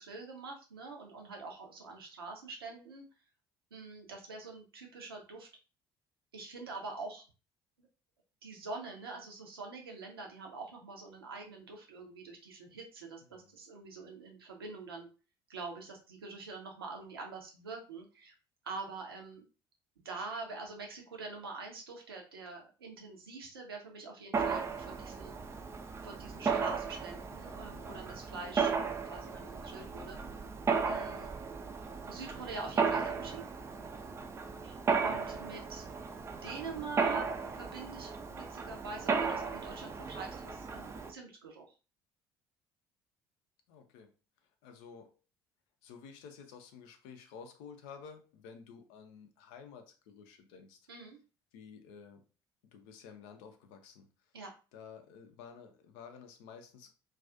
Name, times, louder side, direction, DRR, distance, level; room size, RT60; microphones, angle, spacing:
voice 1, 0.0-3.1 3.7-5.5 6.3-7.2 7.8-7.9 8.4-15.1 15.5-18.3 18.6-19.4 20.0-25.3 26.0-30.2 30.8-31.4 32.1-33.4 34.6-35.9 36.3-41.7 50.9-51.2 54.3-54.5, right 3 dB, 80° right, 1 dB, 0.6 m, -45 dB
Mechanisms, 24.3-41.1, right 5 dB, 20° right, 0.3 m, -35 dB
voice 2, 43.7-44.1 44.6-45.1 45.8-50.8 51.5-52.2 52.7-54.1 54.7-56.9, left 6 dB, 60° left, 6 dB, 0.5 m, -52 dB
2.3 x 2.3 x 2.5 m, 0.33 s
figure-of-eight pair, 55°, 12 cm